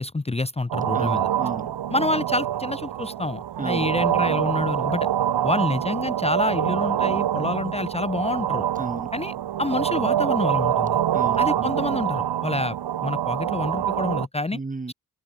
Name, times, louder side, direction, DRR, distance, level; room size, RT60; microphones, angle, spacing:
voice 1, 0.0-1.3 1.9-5.1 5.4-8.7 9.1-11.0 11.4-12.8 13.0-14.6, left 2 dB, 15° left, 0.9 m, -27 dB
sound 1, 0.7-14.3, right 11 dB, 80° right, 1.4 m, -25 dB
voice 2, 0.9-1.7 3.6-3.9 8.8-9.1 11.1-11.7 14.5-14.9, right 3 dB, 20° right, 1.2 m, -33 dB
open air
wide cardioid pair, 105°, 40 cm